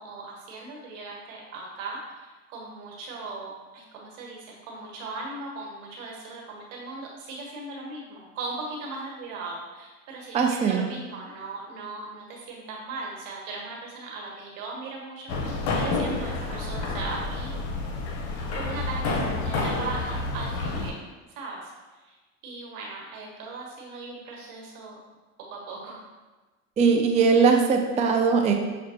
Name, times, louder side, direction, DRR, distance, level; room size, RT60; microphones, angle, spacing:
voice 1, 0.0-17.7 18.5-21.0 21.3-21.7 22.0-22.2 22.4-25.0 25.5-26.1, right 3 dB, 75° right, -2 dB, 1.1 m, -38 dB
voice 2, 10.3-10.9 26.8-28.5, right 5 dB, 20° right, 3 dB, 0.3 m, -20 dB
sound 1, 15.3-20.9, left 3 dB, 65° left, 0.7 m, -29 dB
6.1 x 2.1 x 2.7 m, 1.2 s
supercardioid pair, 85°, 38 cm